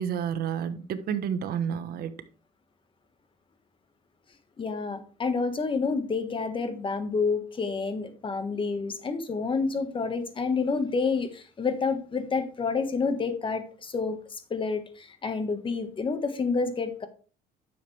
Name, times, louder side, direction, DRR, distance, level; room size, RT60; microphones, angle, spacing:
voice 1, 0.0-2.2, right 8 dB, 65° right, 1.1 m, -30 dB
voice 2, 4.6-17.1, left 4 dB, 30° left, 1.4 m, -29 dB
10.0 x 7.0 x 3.3 m
cardioid pair, 110°, 17 cm